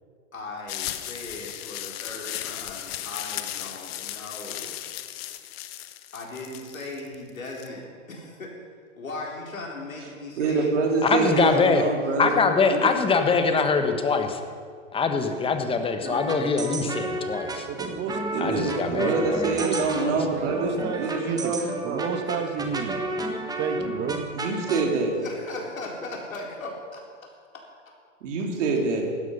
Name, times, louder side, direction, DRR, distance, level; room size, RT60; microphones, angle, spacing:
voice 1, 0.3-4.8 6.1-8.5 9.0-10.8 11.1-11.7 25.0-27.0, left 2 dB, 90° left, -1 dB, 4.3 m, -38 dB
sound 1, 0.7-7.7, left 13 dB, 50° left, 1.0 m, -36 dB
voice 2, 10.4-12.4 12.7-12.9 18.3-22.1 24.4-25.2 28.2-29.1, right 4 dB, 65° right, 1 dB, 3.7 m, -26 dB
voice 3, 11.0-11.8 12.2-14.4 14.9-17.7 18.4-20.2, left 4 dB, 15° left, 6 dB, 1.4 m, -23 dB
sound 2, 16.0-24.9, right 2 dB, 10° right, 1.4 m, -32 dB
voice 4, 17.7-19.1 19.4-19.8 20.3-21.5 21.8-22.9 23.6-24.2, right 6 dB, 25° right, 8 dB, 1.3 m, -31 dB
16.5 x 12.5 x 5.6 m, 2.1 s
hypercardioid pair, 120°, 39 cm